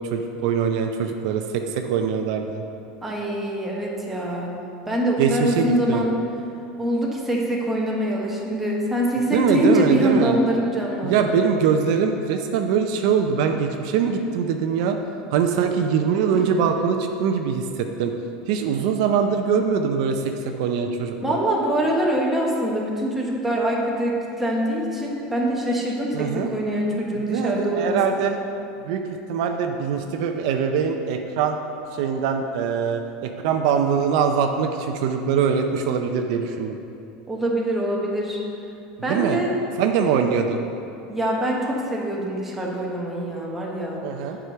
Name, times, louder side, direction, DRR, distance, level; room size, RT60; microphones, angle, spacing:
voice 1, 0.0-2.6 5.2-6.0 9.3-10.4 11.0-15.0 15.3-18.1 18.5-21.4 26.1-26.5 27.1-28.4 28.9-31.6 31.9-36.8 39.1-39.4 39.8-40.6 44.0-44.4, right 6 dB, 65° right, 5 dB, 0.5 m, -23 dB
voice 2, 3.0-4.5 4.9-6.2 6.8-11.4 16.3-16.4 21.2-28.3 37.3-38.4 39.0-39.5 41.1-44.0, equal, 5° right, -3 dB, 1.1 m, -24 dB
8.0 x 4.9 x 5.7 m, 2.7 s
supercardioid pair, 160°, 3 cm